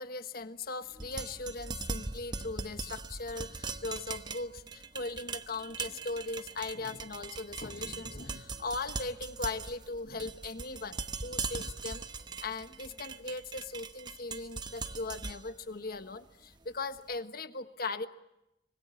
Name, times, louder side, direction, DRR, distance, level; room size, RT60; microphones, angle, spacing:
voice 1, 0.0-12.0 12.4-18.1, left 3 dB, 60° left, 9 dB, 1.4 m, -39 dB
sound 1, 0.9-17.0, right 4 dB, 25° right, 1.0 m, -41 dB
25.0 x 20.5 x 9.5 m, 0.88 s
head